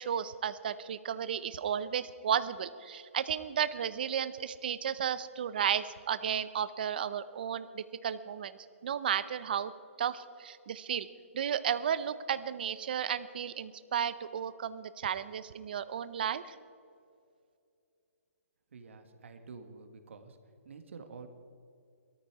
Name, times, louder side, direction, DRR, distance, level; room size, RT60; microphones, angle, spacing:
voice 1, 0.0-9.7 10.0-11.1 11.3-16.6, right 8 dB, 40° right, 14 dB, 0.6 m, -33 dB
voice 2, 18.7-20.4 20.7-21.3, right 4 dB, 60° right, 7 dB, 1.7 m, -49 dB
18.0 x 13.5 x 4.8 m, 2.5 s
hypercardioid pair, 175°, 8 cm